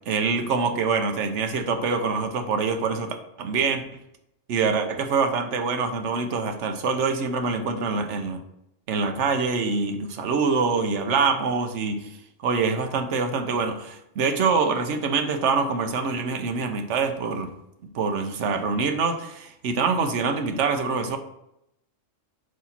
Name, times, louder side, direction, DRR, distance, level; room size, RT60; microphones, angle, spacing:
voice 1, 0.1-3.8 4.5-8.4 8.9-12.1 12.4-17.5 17.9-21.2, right 4 dB, 70° right, 6 dB, 1.1 m, -25 dB
4.9 x 4.1 x 5.7 m, 0.83 s
omnidirectional pair, 1.3 m